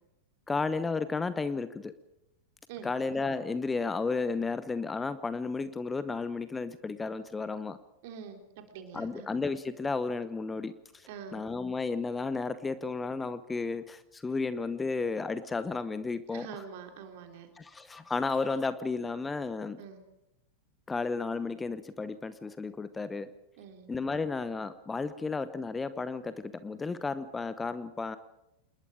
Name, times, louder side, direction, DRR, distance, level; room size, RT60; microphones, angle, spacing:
voice 1, 0.5-1.9 2.8-7.8 8.9-16.7 17.6-19.8 20.9-23.3 23.9-28.2, left 4 dB, 15° left, 14 dB, 0.9 m, -33 dB
voice 2, 8.0-9.3 11.1-11.4 16.3-17.5 19.8-20.0 23.6-23.9, right 7 dB, 50° right, 5 dB, 3.8 m, -45 dB
27.0 x 21.0 x 5.1 m, 0.88 s
figure-of-eight pair, 90°, 0 cm